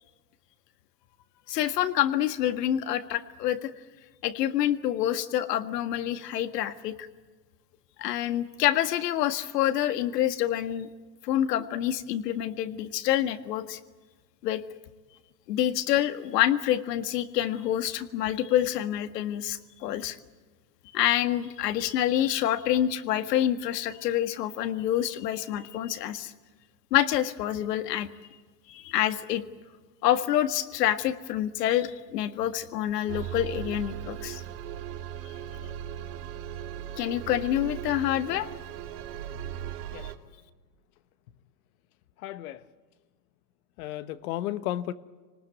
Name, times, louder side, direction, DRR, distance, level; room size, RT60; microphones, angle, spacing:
voice 1, 1.5-3.7 4.2-7.0 8.0-10.9 11.2-13.8 14.4-14.6 15.5-20.2 20.9-26.3 26.9-28.1 28.7-29.4 30.0-34.4 37.0-38.5, left 12 dB, 75° left, 10 dB, 1.9 m, -27 dB
sound 1, 33.1-40.1, right 11 dB, 65° right, 2.6 m, -38 dB
voice 2, 42.2-42.6 43.8-44.9, left 13 dB, 60° left, 13 dB, 1.2 m, -33 dB
26.0 x 19.5 x 9.3 m, 1.4 s
supercardioid pair, 130°, 49 cm